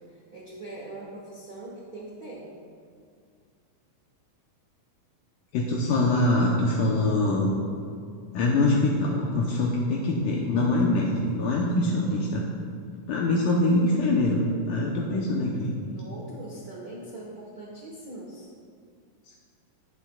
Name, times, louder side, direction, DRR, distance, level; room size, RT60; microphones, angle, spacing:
voice 1, 0.0-2.5 12.0-12.2 15.3-18.5, right 2 dB, 85° right, -5 dB, 0.8 m, -42 dB
voice 2, 5.5-7.5 8.3-12.4 13.1-15.8, left 2 dB, 75° left, -3 dB, 2.3 m, -24 dB
16.0 x 8.3 x 2.3 m, 2.3 s
omnidirectional pair, 4.0 m